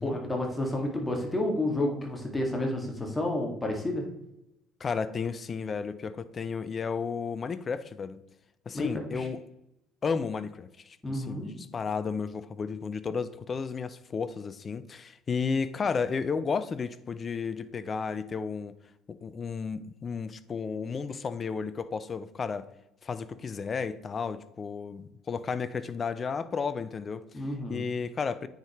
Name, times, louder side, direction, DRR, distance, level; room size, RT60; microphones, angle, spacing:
voice 1, 0.0-4.0 8.7-9.3 11.0-11.5 27.3-27.8, left 1 dB, 15° left, 2.0 m, -30 dB
voice 2, 4.8-8.2 8.7-9.4 10.0-18.8 19.1-22.7 23.0-28.5, left 5 dB, 35° left, 0.5 m, -33 dB
9.0 x 5.1 x 3.1 m
figure-of-eight pair, 55°, 0 cm